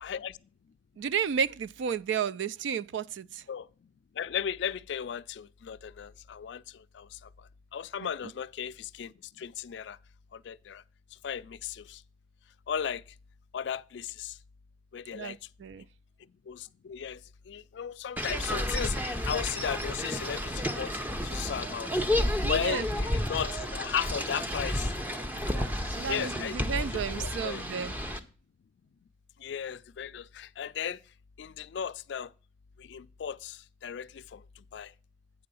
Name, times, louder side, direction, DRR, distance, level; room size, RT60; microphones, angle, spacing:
voice 1, 0.0-0.4 3.5-3.7 4.2-6.6 6.9-7.1 7.7-9.1 9.4-10.0 10.5-10.8 11.2-12.0 12.7-13.0 13.5-14.3 14.9-15.4 16.5-17.2 17.5-20.9 21.2-21.9 22.5-24.9 26.1-27.6 29.4-31.0 31.4-32.3 32.9-34.4 34.7-34.9, left 8 dB, 70° left, 0.3 m, -35 dB
voice 2, 1.0-3.4 8.0-8.1 15.1-15.9 22.2-22.9 25.5-27.9, right 7 dB, 75° right, 0.3 m, -33 dB
sound 1, 18.2-28.2, left 1 dB, 10° right, 0.5 m, -31 dB
8.9 x 3.8 x 6.8 m
head